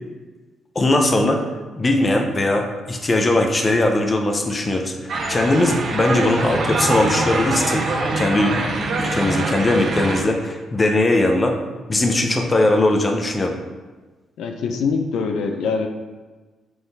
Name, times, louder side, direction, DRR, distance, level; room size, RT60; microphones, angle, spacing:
voice 1, 0.7-1.4 1.8-7.9 8.2-8.5 9.0-11.6 11.9-13.6, left 2 dB, 25° left, 3 dB, 0.7 m, -19 dB
sound 1, 5.1-10.2, right 3 dB, 60° right, 1.3 m, -24 dB
voice 2, 14.4-15.9, left 5 dB, 80° left, 4 dB, 0.6 m, -23 dB
7.8 x 3.8 x 3.4 m, 1.3 s
cardioid pair, 120°, 0 cm